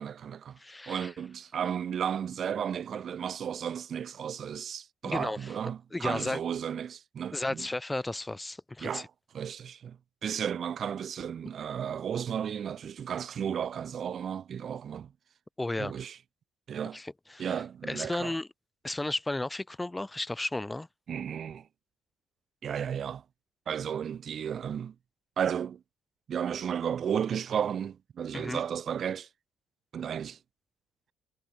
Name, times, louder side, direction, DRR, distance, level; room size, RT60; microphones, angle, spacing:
voice 1, 0.0-0.6 0.9-7.7 8.8-9.1 9.3-15.1 15.8-16.2 16.7-17.0 17.4-18.4 21.1-21.7 22.6-23.2 23.7-24.9 25.4-25.8 26.3-29.3 29.9-30.4, right 8 dB, 40° right, 1.0 m, -34 dB
voice 2, 0.6-1.1 5.0-5.5 5.9-6.4 7.3-9.0 15.6-15.9 16.9-17.5 17.8-18.5 18.8-20.9 28.3-28.6, left 2 dB, 10° left, 0.6 m, -33 dB
cardioid pair, 140°, 0 cm